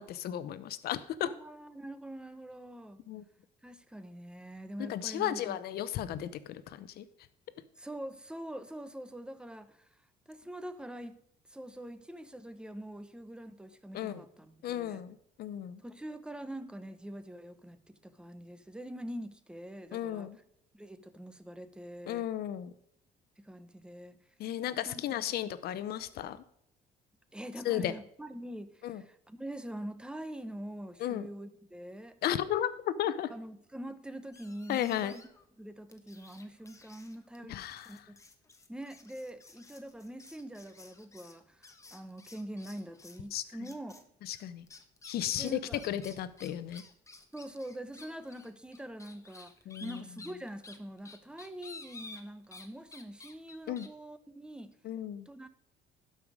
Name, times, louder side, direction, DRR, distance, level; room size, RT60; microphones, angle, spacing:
voice 1, 0.0-1.3 3.1-3.2 4.8-7.1 13.9-14.2 14.6-15.8 19.9-20.4 22.1-22.7 24.4-26.4 27.6-28.0 28.8-29.0 31.0-31.3 32.2-33.3 34.7-35.2 37.5-37.9 43.3-43.4 44.2-44.7 45.0-46.8 49.7-50.0 53.7-53.9 54.8-55.3, left 11 dB, 70° left, 15 dB, 0.8 m, -34 dB
voice 2, 1.2-3.0 3.6-5.6 7.8-9.9 10.3-11.2 11.5-15.0 15.8-20.3 20.7-22.3 23.4-24.2 24.9-25.2 27.3-32.2 33.3-35.2 35.6-38.2 38.7-44.0 45.4-45.8 47.3-49.5 49.8-54.8 55.3-55.5, right 1 dB, 5° right, 11 dB, 0.8 m, -44 dB
sound 1, 34.3-35.4 35.9-43.3 43.6-44.0 44.3-52.7 52.9-53.9, left 3 dB, 20° left, 1.2 m, -53 dB
12.0 x 5.6 x 4.9 m, 0.72 s
cardioid pair, 110°, 17 cm